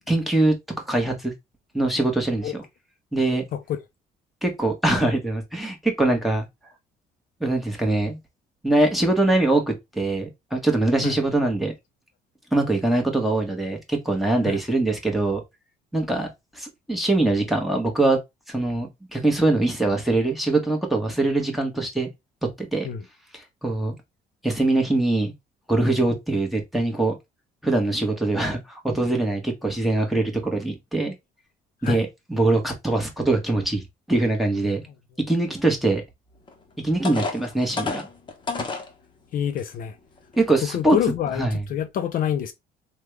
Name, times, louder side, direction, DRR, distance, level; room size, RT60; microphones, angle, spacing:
voice 1, 0.1-0.5 0.9-1.3 1.7-2.6 3.1-3.4 4.4-6.4 7.4-8.2 8.6-11.7 12.5-15.4 15.9-16.3 16.5-18.2 18.5-22.1 22.6-22.9 23.3-23.9 24.4-25.3 25.7-27.2 27.6-31.1 31.8-33.8 34.1-34.8 35.3-36.0 36.8-38.0 40.4-41.0 41.4-41.6, right 2 dB, ahead, 1.2 m, -23 dB
sound 1, 36.5-36.6 37.0-38.9 39.6-39.7 40.2-40.4, left 3 dB, 30° left, 0.9 m, -30 dB
voice 2, 39.3-40.0 40.6-42.5, left 9 dB, 55° left, 0.5 m, -26 dB
3.4 x 2.3 x 3.2 m
cardioid pair, 110°, 17 cm